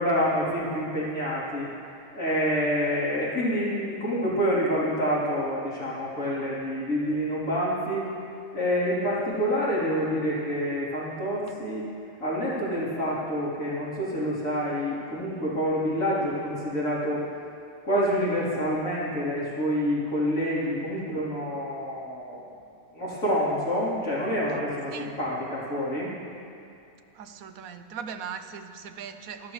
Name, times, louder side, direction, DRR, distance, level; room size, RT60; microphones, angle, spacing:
voice 1, 0.0-1.7 2.1-8.1 8.5-11.9 12.2-17.2 17.8-22.4 22.9-26.2, equal, 75° left, -8 dB, 4.3 m, -27 dB
voice 2, 27.1-29.5, right 7 dB, 85° right, 9 dB, 1.2 m, -39 dB
26.5 x 12.0 x 3.3 m, 2.5 s
omnidirectional pair, 1.4 m